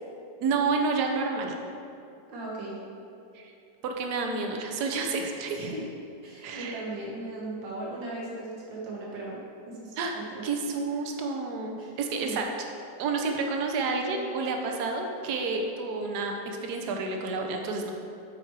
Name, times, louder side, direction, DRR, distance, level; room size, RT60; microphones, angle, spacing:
voice 1, 0.4-1.5 3.3-3.5 3.8-5.7 6.4-6.8 10.0-10.1 10.4-12.4 13.0-17.9, right 4 dB, 65° right, 2 dB, 1.3 m, -30 dB
voice 2, 2.3-2.7 5.5-5.9 6.2-9.4 9.8-10.2 11.8-11.9 12.2-12.4, right 2 dB, 85° right, -4 dB, 1.9 m, -37 dB
8.7 x 4.7 x 4.6 m, 2.6 s
omnidirectional pair, 1.9 m